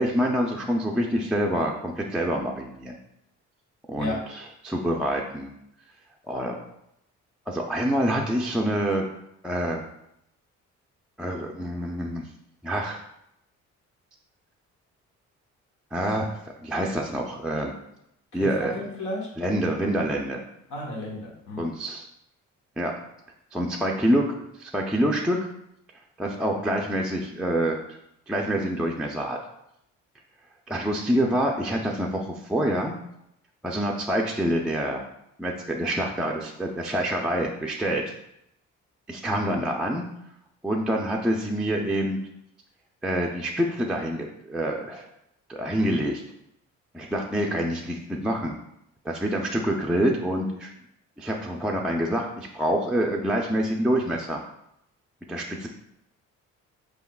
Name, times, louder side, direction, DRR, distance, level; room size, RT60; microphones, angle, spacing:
voice 1, 0.0-3.0 3.9-5.5 6.3-6.6 7.5-9.1 9.4-9.8 11.2-12.3 12.6-13.0 15.9-17.7 18.3-18.7 19.4-20.4 21.6-22.1 22.8-22.9 23.5-24.3 24.6-25.4 26.2-27.8 28.3-29.4 30.7-33.0 33.6-35.0 35.4-38.0 39.1-40.1 40.6-42.2 43.0-45.0 45.5-46.2 46.9-48.5 49.0-50.7 51.2-54.4 55.3-55.7, equal, 5° right, -1 dB, 0.4 m, -26 dB
voice 2, 18.3-19.3 20.7-21.7 39.3-39.6, left 1 dB, 80° left, -2 dB, 1.2 m, -33 dB
4.8 x 3.5 x 2.3 m, 0.79 s
cardioid pair, 90°, 30 cm